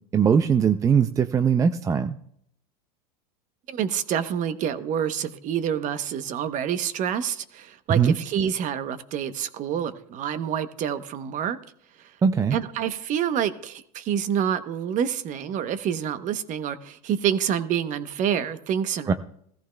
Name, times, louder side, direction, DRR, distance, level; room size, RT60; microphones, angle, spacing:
voice 1, 0.1-2.2 8.0-8.1 12.2-12.6 19.1-19.2, right 7 dB, 15° right, 10 dB, 0.4 m, -20 dB
voice 2, 3.7-11.6 12.0-12.1 12.5-19.1, right 9 dB, 40° right, 12 dB, 0.9 m, -27 dB
16.5 x 14.5 x 2.2 m, 0.69 s
supercardioid pair, 120°, 21 cm